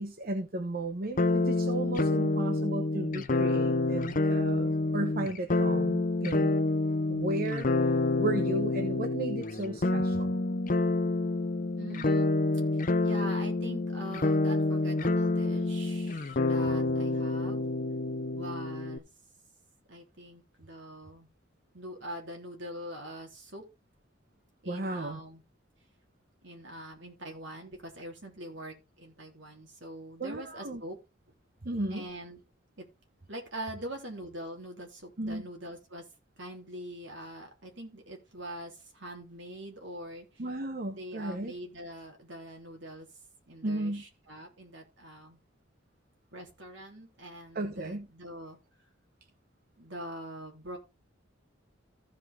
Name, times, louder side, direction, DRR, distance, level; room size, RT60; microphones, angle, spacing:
voice 1, 0.0-6.5 7.1-10.3 24.6-25.2 30.2-30.8 31.6-32.1 35.2-35.5 40.4-41.5 43.6-44.0 47.5-48.1, right 2 dB, 50° right, 6 dB, 0.9 m, -35 dB
sound 1, 1.2-19.0, left 2 dB, 40° left, 0.6 m, -28 dB
voice 2, 11.7-12.3 13.0-17.6 18.3-19.1 19.9-21.3 21.7-23.6 24.6-25.4 26.4-31.0 31.9-32.4 32.8-32.9 33.3-36.0 36.4-40.4 40.9-43.1 43.5-45.4 46.3-48.6 49.8-50.8, right 1 dB, 65° right, 1 dB, 3.4 m, -43 dB
15.0 x 5.2 x 3.6 m, 0.28 s
head